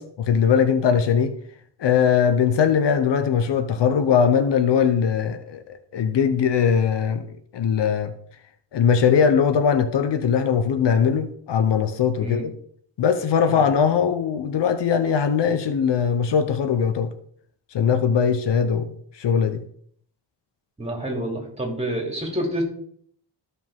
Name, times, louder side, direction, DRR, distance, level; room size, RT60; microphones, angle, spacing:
voice 1, 0.0-1.3 1.8-7.3 7.5-8.1 8.7-12.5 13.0-17.1 17.7-19.6, left 7 dB, 70° left, 9 dB, 1.0 m, -20 dB
voice 2, 20.8-22.6, right 1 dB, 15° right, -1 dB, 3.1 m, -28 dB
14.0 x 5.6 x 3.7 m, 0.63 s
cardioid pair, 105°, 44 cm